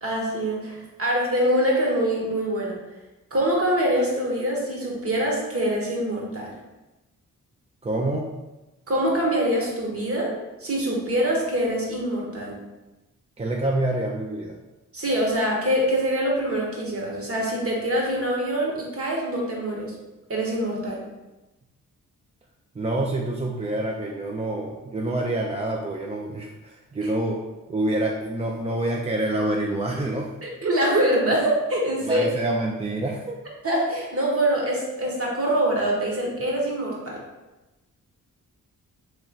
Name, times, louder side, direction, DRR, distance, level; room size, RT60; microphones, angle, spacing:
voice 1, 0.0-2.8 3.3-6.5 8.9-10.3 10.6-12.6 14.9-19.9 20.3-21.0 27.0-27.1 30.4-32.3 33.6-37.2, right 1 dB, 40° right, -2 dB, 1.3 m, -24 dB
voice 2, 7.8-8.3 13.4-14.6 22.7-27.4 27.7-30.4 32.0-33.4, right 1 dB, 20° right, -1 dB, 0.4 m, -27 dB
3.1 x 2.9 x 3.8 m, 1.1 s
cardioid pair, 60°, 34 cm